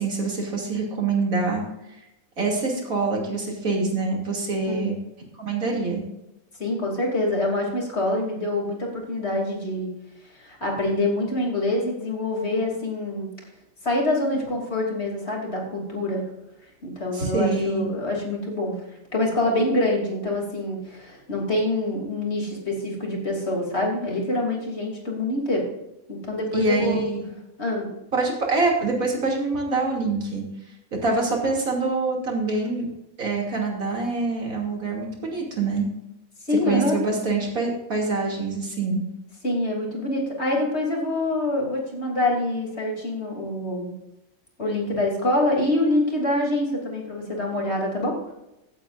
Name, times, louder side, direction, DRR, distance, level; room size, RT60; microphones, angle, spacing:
voice 1, 0.0-1.6 2.4-4.9 5.4-6.0 17.1-17.8 26.5-27.2 28.1-30.4 30.9-32.9 33.2-35.9 36.7-39.0, right 3 dB, 85° right, -1 dB, 3.1 m, -25 dB
voice 2, 6.6-9.9 10.4-13.3 13.8-16.2 16.8-18.8 19.1-25.6 26.1-27.0 27.6-27.9 36.5-37.0 39.4-43.9 44.6-48.1, left 1 dB, 50° left, -1 dB, 3.2 m, -25 dB
16.5 x 8.5 x 2.5 m, 0.91 s
omnidirectional pair, 1.4 m